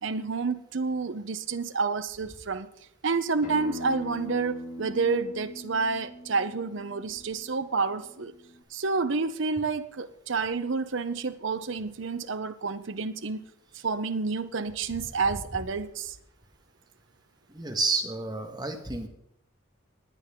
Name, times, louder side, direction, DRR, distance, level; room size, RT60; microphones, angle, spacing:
voice 1, 0.0-2.7 3.0-8.3 8.7-13.4 13.8-16.2, right 4 dB, 60° right, 12 dB, 0.7 m, -29 dB
Acoustic guitar, 3.4-8.6, left 1 dB, 40° left, 1.8 m, -42 dB
voice 2, 17.5-19.1, right 3 dB, 20° right, 3 dB, 1.4 m, -30 dB
20.0 x 9.3 x 3.7 m, 0.76 s
head